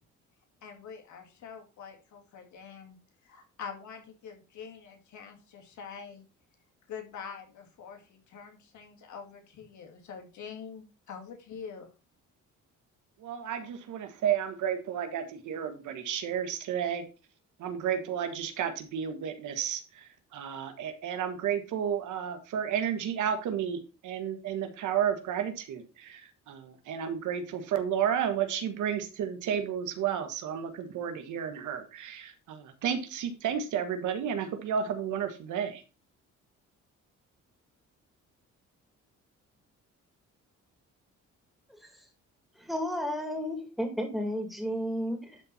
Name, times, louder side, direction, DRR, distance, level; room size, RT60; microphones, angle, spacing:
voice 1, 0.6-3.0 3.2-6.2 6.9-11.9, left 6 dB, 70° left, 3 dB, 2.2 m, -45 dB
voice 2, 13.2-17.0 17.6-35.8, right 8 dB, 80° right, 8 dB, 1.5 m, -32 dB
voice 3, 41.7-42.0 42.6-45.4, equal, ahead, 3 dB, 2.8 m, -33 dB
11.5 x 4.3 x 4.2 m, 0.33 s
cardioid pair, 90°, 30 cm